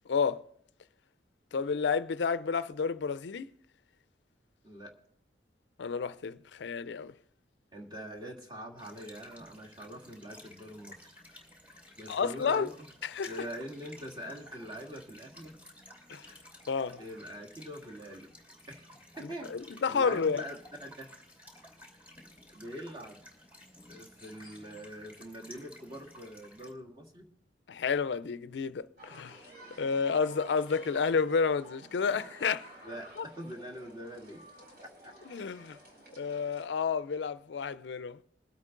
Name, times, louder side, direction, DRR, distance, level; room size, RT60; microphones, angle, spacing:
voice 1, 0.1-0.4 1.5-3.5 5.8-7.1 12.1-12.7 13.0-13.5 16.1-16.3 16.7-17.0 19.2-20.4 27.7-29.4 29.8-32.7 33.2-33.3 35.3-35.8 36.2-38.2, left 5 dB, 70° left, 0.4 m, -30 dB
voice 2, 4.6-5.0 7.7-11.1 12.0-12.7 13.3-15.5 17.0-18.3 18.7-18.9 19.2-21.1 22.5-23.2 23.9-27.3 32.8-34.5 35.0-35.1, equal, 25° right, 1.8 m, -44 dB
sound 1, 8.8-26.7, left 1 dB, 10° right, 3.0 m, -54 dB
sound 2, 29.0-36.7, equal, 55° right, 4.3 m, -52 dB
22.0 x 8.1 x 3.8 m
head